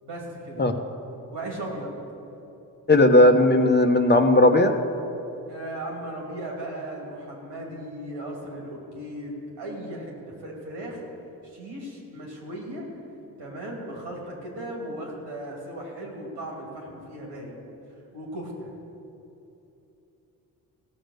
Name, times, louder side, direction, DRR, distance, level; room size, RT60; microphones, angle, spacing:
voice 1, 0.0-0.7 1.3-1.9 5.5-10.1 10.4-11.0 11.4-12.9 13.4-17.6 18.1-18.7, right 1 dB, 80° right, -1 dB, 2.8 m, -36 dB
voice 2, 2.9-4.7, left 1 dB, 25° left, 5 dB, 1.0 m, -16 dB
16.0 x 6.4 x 6.6 m, 2.9 s
supercardioid pair, 50°, 40 cm